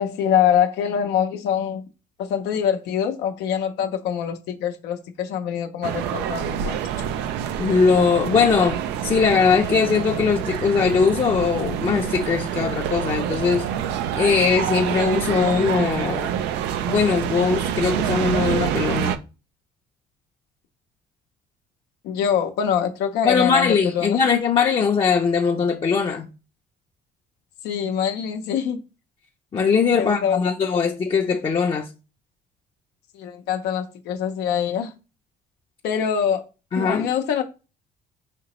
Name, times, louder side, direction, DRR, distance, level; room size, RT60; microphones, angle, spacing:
voice 1, 0.0-1.8 2.2-6.8 22.0-24.2 27.6-28.8 29.9-30.4 33.1-34.9 35.8-36.5 36.8-37.4, left 8 dB, 85° left, 0.6 m, -24 dB
sound 1, 5.8-19.2, right 9 dB, 90° right, 0.4 m, -26 dB
voice 2, 7.6-13.7 14.2-16.3 16.9-19.2 23.2-26.3 29.5-31.9 36.7-37.1, left 5 dB, 30° left, 0.5 m, -20 dB
5.0 x 2.8 x 3.0 m
cardioid pair, 110°, 17 cm